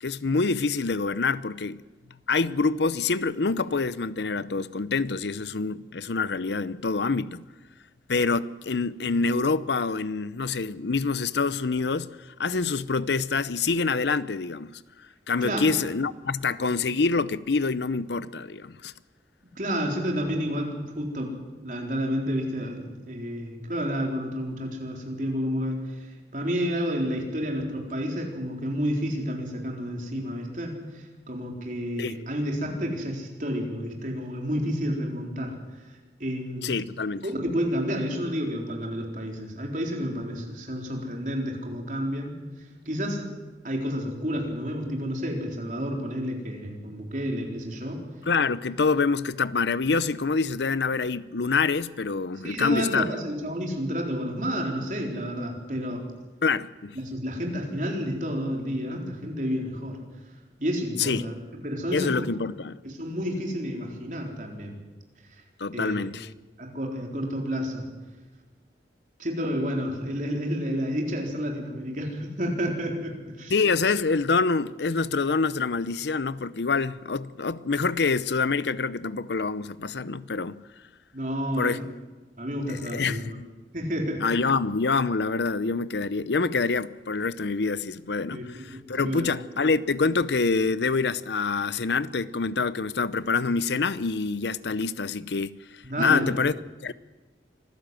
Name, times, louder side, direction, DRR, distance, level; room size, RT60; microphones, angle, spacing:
voice 1, 0.0-1.8 2.3-7.4 8.1-12.1 12.4-14.8 15.3-18.9 32.0-32.2 36.6-37.3 48.3-53.1 56.4-57.0 61.0-61.2 61.9-62.8 65.6-66.3 73.5-80.6 81.6-81.8 82.7-83.4 84.2-95.6 96.0-96.5 96.8-96.9, left 4 dB, 75° left, 0.7 m, -26 dB
voice 2, 19.6-21.3 21.6-35.6 36.2-36.7 37.2-42.4 42.9-43.3 43.6-48.0 52.4-56.1 56.9-60.0 60.6-62.3 62.8-64.8 65.7-66.1 66.6-67.9 69.2-73.5 81.1-81.9 82.4-83.4 83.7-84.3 88.3-89.3 95.8-96.3, equal, 45° right, 4.1 m, -30 dB
25.5 x 15.5 x 7.7 m
head